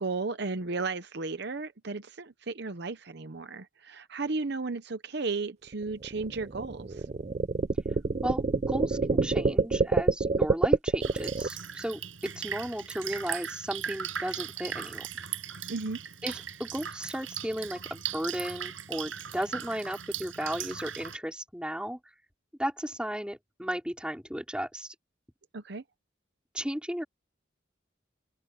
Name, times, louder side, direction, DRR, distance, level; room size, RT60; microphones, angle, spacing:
voice 1, 0.0-7.0 15.7-16.0 25.5-25.8, right 3 dB, 55° right, 0.8 m, -34 dB
sound 1, 5.7-11.5, right 3 dB, 35° right, 0.4 m, -26 dB
voice 2, 8.2-15.1 16.2-22.0 22.6-24.9 26.5-27.0, equal, 5° right, 4.5 m, -35 dB
Drip, 11.0-21.2, right 8 dB, 85° right, 6.6 m, -38 dB
open air
head